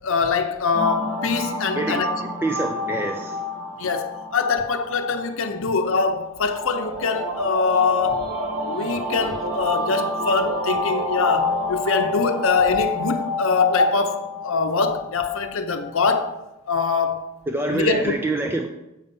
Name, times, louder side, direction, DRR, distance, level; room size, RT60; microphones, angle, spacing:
voice 1, 0.0-2.2 3.8-8.2 8.6-16.4 16.7-17.3 17.7-18.1, left 4 dB, 65° left, 0.7 m, -23 dB
sound 1, 0.7-16.0, left 2 dB, 60° right, 1.1 m, -28 dB
voice 2, 1.8-2.1 2.4-3.5 17.5-18.7, right 2 dB, 10° right, 0.4 m, -25 dB
8.1 x 5.5 x 5.4 m
head